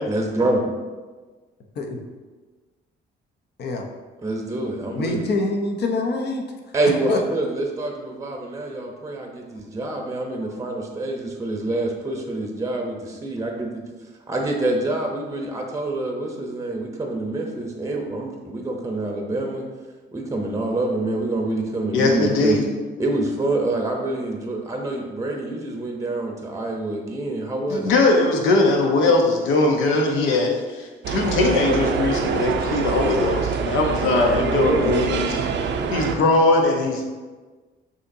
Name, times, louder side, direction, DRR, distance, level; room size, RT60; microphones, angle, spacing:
voice 1, 0.1-0.7 4.2-5.3 6.7-13.7 14.3-19.7 20.1-22.6 23.0-27.9 34.3-35.0, right 2 dB, 15° right, 1 dB, 0.7 m, -26 dB
voice 2, 5.0-6.4 7.1-7.2, left 3 dB, 55° left, 3 dB, 0.7 m, -25 dB
voice 3, 21.9-22.6 27.7-35.3 35.9-37.0, left 2 dB, 90° left, 2 dB, 0.8 m, -20 dB
sound 1, 31.0-36.2, right 6 dB, 65° right, 0.5 m, -25 dB
6.3 x 2.8 x 2.6 m, 1.3 s
cardioid pair, 90°, 20 cm